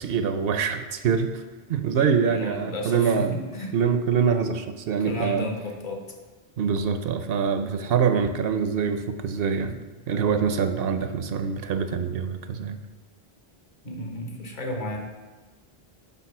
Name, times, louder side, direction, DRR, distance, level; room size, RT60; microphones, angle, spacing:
voice 1, 0.0-1.4 1.7-3.3 3.7-5.5 6.6-9.8 10.1-12.8, right 6 dB, 70° right, 9 dB, 0.8 m, -24 dB
voice 2, 2.2-3.7 5.0-6.0 13.8-15.0, left 1 dB, 50° left, 2 dB, 1.2 m, -33 dB
7.1 x 4.0 x 5.9 m, 1.3 s
omnidirectional pair, 1.0 m